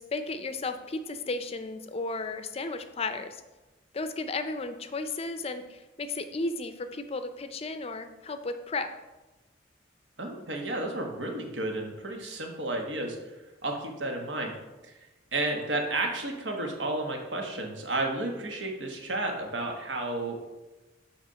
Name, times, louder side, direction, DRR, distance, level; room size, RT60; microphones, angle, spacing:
voice 1, 0.0-3.4 3.9-8.9, left 3 dB, 35° left, 9 dB, 0.5 m, -34 dB
voice 2, 10.2-13.2 13.6-14.5 14.8-15.0 15.3-20.6, right 2 dB, 75° right, 2 dB, 1.3 m, -32 dB
7.9 x 3.5 x 5.6 m, 1.1 s
head